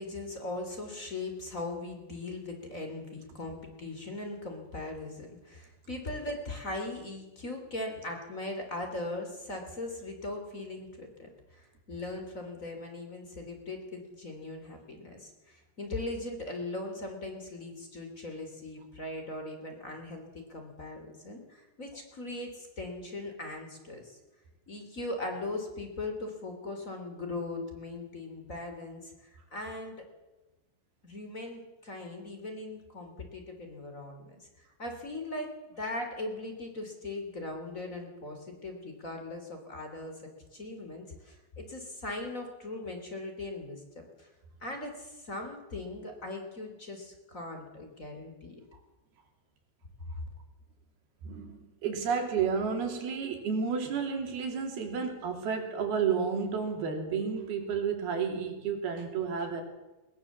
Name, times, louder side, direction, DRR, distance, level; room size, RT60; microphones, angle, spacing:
voice 1, 0.0-24.2 24.7-29.1 29.5-30.0 31.0-34.5 34.8-40.1 40.5-44.3 44.6-48.6, left 2 dB, 20° left, 4 dB, 3.1 m, -39 dB
voice 2, 51.2-59.6, right 6 dB, 80° right, 4 dB, 4.9 m, -31 dB
21.5 x 21.0 x 7.3 m, 1.1 s
omnidirectional pair, 4.4 m